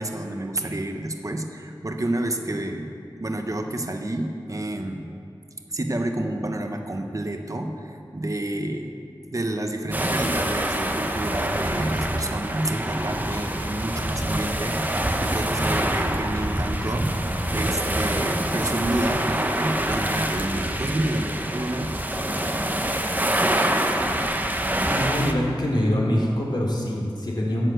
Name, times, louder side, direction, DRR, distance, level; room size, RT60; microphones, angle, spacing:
voice 1, 0.0-2.9 3.2-5.1 5.7-9.0 9.3-22.0, right 1 dB, 40° right, 4 dB, 1.1 m, -29 dB
sound 1, 9.9-25.3, right 1 dB, 20° right, 0.9 m, -26 dB
voice 2, 24.8-27.7, equal, 55° left, -3 dB, 2.9 m, -24 dB
11.0 x 7.5 x 7.9 m, 2.4 s
wide cardioid pair, 50°, 9 cm